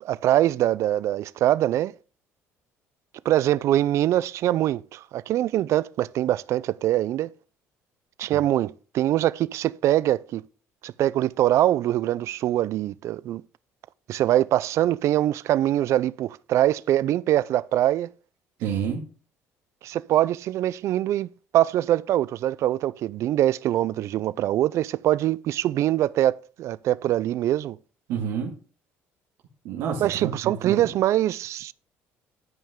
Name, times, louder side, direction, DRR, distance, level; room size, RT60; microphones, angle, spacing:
voice 1, 0.0-1.9 3.3-7.3 8.2-10.4 10.8-13.4 14.1-18.1 19.8-27.8 30.0-31.7, right 13 dB, 60° right, 0.4 m, -23 dB
voice 2, 18.6-19.0 28.1-28.5 29.6-30.9, right 7 dB, 80° right, 2.1 m, -29 dB
12.5 x 5.4 x 3.7 m
supercardioid pair, 95°, 5 cm